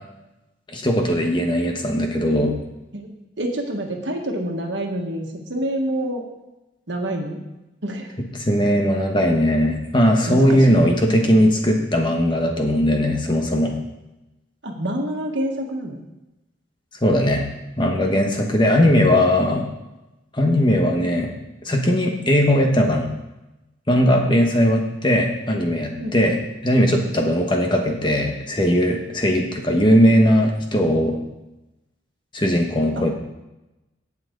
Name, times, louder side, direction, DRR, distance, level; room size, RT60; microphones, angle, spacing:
voice 1, 0.7-2.5 8.3-13.8 17.0-17.5 17.8-19.7 20.3-21.3 21.6-23.1 23.9-26.4 26.6-31.2 32.3-33.1, equal, 25° left, 2 dB, 1.4 m, -19 dB
voice 2, 3.4-6.2 6.9-7.4 7.8-8.1 10.3-10.9 14.6-16.0 26.0-26.1 32.9-33.1, right 1 dB, 80° right, 1 dB, 1.7 m, -27 dB
17.5 x 6.0 x 3.9 m, 0.99 s
head